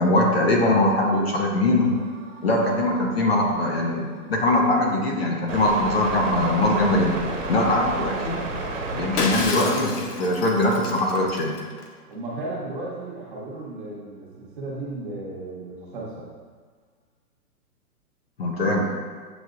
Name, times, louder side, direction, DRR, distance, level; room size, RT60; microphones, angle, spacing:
voice 1, 0.0-1.9 2.4-7.2 7.5-8.4 8.9-11.6 18.4-18.9, left 1 dB, 40° left, 0 dB, 0.7 m, -22 dB
sound 1, 1.8-9.5 12.6-12.7, right 2 dB, 55° right, 1.3 m, -33 dB
Shatter, 9.2-11.9, left 4 dB, 85° left, 0.8 m, -31 dB
voice 2, 12.1-16.3, right 2 dB, 35° right, -5 dB, 0.9 m, -34 dB
7.7 x 2.8 x 2.4 m, 1.6 s
hypercardioid pair, 165°, 45 cm